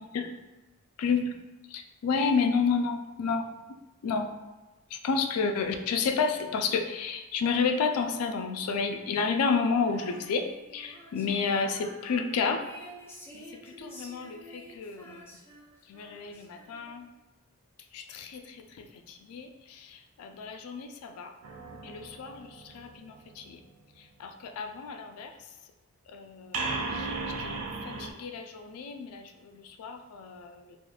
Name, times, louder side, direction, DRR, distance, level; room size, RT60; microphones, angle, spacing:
voice 1, 1.0-1.3 1.7-3.5 4.0-4.3 4.9-12.7 13.3-15.3 15.8-17.1 17.9-21.4 21.7-23.6 24.0-25.5 26.1-27.6 27.8-30.8, left 5 dB, 80° left, 6 dB, 0.3 m, -31 dB
Female singing, 9.8-17.1, equal, 10° left, 0.4 m, -50 dB
sound 1, 21.4-23.4 26.5-28.1, right 3 dB, 70° right, 0.4 m, -35 dB
3.5 x 2.4 x 2.3 m, 1.1 s
head